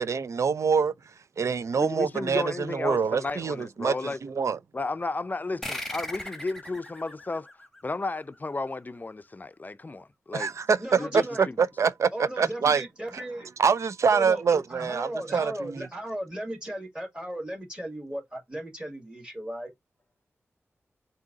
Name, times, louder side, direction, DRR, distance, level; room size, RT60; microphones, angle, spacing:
voice 1, 0.0-4.6 10.3-12.9 13.1-13.2 13.6-15.9, right 6 dB, 70° right, 0.4 m, -25 dB
voice 2, 1.8-4.2 4.7-7.5 7.8-10.5 11.0-11.2, left 3 dB, 35° left, 0.5 m, -33 dB
sound 1, 5.6-8.7, left 1 dB, 5° left, 1.2 m, -39 dB
voice 3, 10.8-11.5 12.1-13.5 14.1-19.7, right 1 dB, 20° right, 2.0 m, -36 dB
3.7 x 2.7 x 3.9 m
cardioid pair, 45°, 5 cm